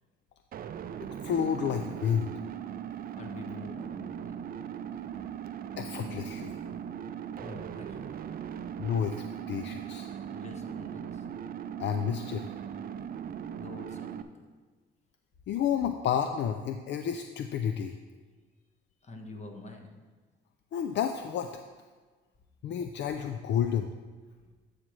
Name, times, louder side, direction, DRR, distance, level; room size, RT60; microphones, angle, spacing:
sound 1, 0.5-14.2, right 8 dB, 45° right, 0.4 m, -39 dB
voice 1, 1.2-2.3 5.8-6.6 8.8-10.1 11.8-12.4 15.5-18.0 20.7-21.6 22.6-23.9, left 8 dB, 65° left, 7 dB, 0.4 m, -30 dB
voice 2, 3.1-4.4 7.4-8.1 10.3-11.2 13.6-14.5 19.0-20.0 24.4-24.5, left 2 dB, 35° left, 3 dB, 1.2 m, -46 dB
11.0 x 6.5 x 3.2 m, 1.4 s
cardioid pair, 90°, 20 cm